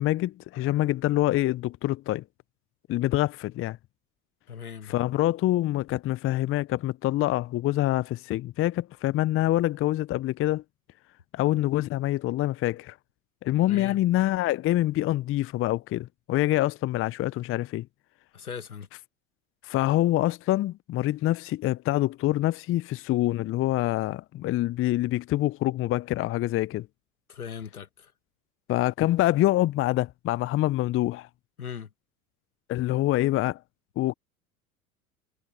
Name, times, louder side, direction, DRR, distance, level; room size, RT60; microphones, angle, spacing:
voice 1, 0.0-2.2 2.9-3.8 4.9-10.6 11.3-13.0 13.4-17.9 19.6-26.9 28.7-31.3 32.7-33.6 34.0-34.1, left 15 dB, 30° left, 0.7 m, -26 dB
voice 2, 4.5-4.9 13.7-14.0 18.3-18.9 27.3-28.1 31.6-31.9, left 7 dB, 85° left, 2.0 m, -39 dB
figure-of-eight pair, 75°, 43 cm